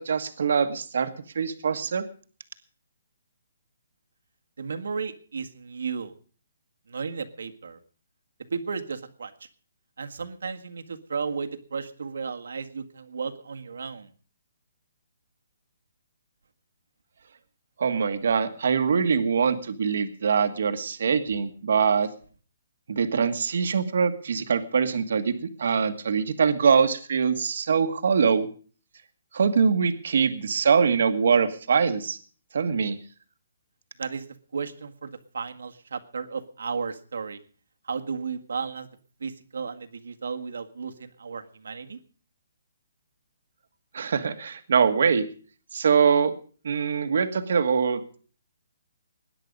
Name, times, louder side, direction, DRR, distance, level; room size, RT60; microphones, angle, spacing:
voice 1, 0.0-2.1 17.8-22.1 22.9-28.5 29.3-32.2 32.5-33.0 43.9-45.2 45.7-46.3 46.6-48.2, right 6 dB, 55° right, 9 dB, 1.5 m, -23 dB
voice 2, 4.6-6.1 6.9-7.8 8.5-9.3 10.0-14.1 34.0-34.3 34.5-37.4 37.8-38.9 39.2-42.0, right 5 dB, 75° right, 6 dB, 1.8 m, -34 dB
20.5 x 10.0 x 5.3 m, 0.42 s
hypercardioid pair, 175°, 0 cm